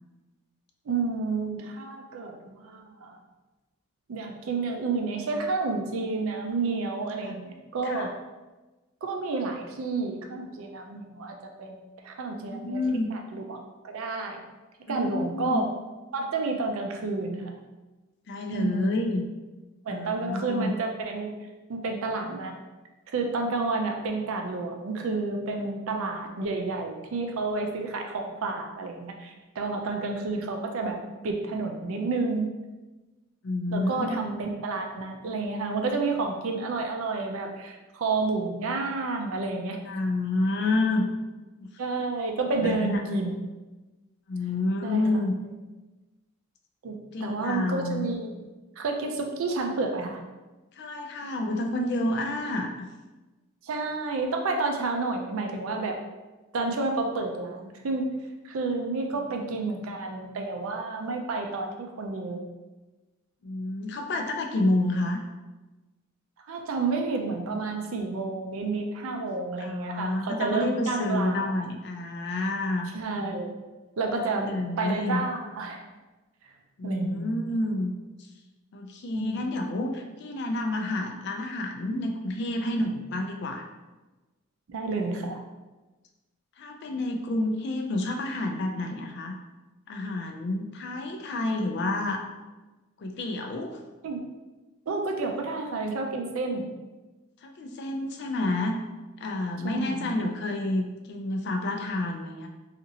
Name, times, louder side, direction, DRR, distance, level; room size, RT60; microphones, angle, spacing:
voice 1, 0.9-3.2 4.1-8.1 9.0-12.8 13.1-14.4 14.9-15.6 16.1-17.5 18.5-18.9 19.9-21.4 21.7-22.6 23.1-31.0 31.2-32.5 33.7-39.8 41.8-43.3 44.8-45.1 46.8-47.0 47.2-48.3 48.8-50.2 53.6-56.0 56.5-58.1 58.4-62.5 66.5-71.6 72.9-73.5 74.0-75.8 76.8-77.4 79.1-79.5 84.7-85.4 94.0-94.2 94.9-96.7 99.6-100.1, right 3 dB, 70° right, 3 dB, 0.4 m, -30 dB
voice 2, 12.4-13.1 14.9-15.6 18.3-19.2 19.9-20.7 29.8-29.9 33.4-34.2 39.9-41.0 41.6-41.7 42.6-43.0 44.3-45.3 47.1-48.1 50.8-52.9 59.1-59.6 63.4-65.2 69.6-72.9 74.1-75.2 76.8-77.9 78.7-83.7 86.6-89.3 89.9-92.2 93.0-93.8 97.4-98.8 99.2-102.5, left 2 dB, 50° left, 3 dB, 0.3 m, -29 dB
2.8 x 2.4 x 2.7 m, 1.2 s
head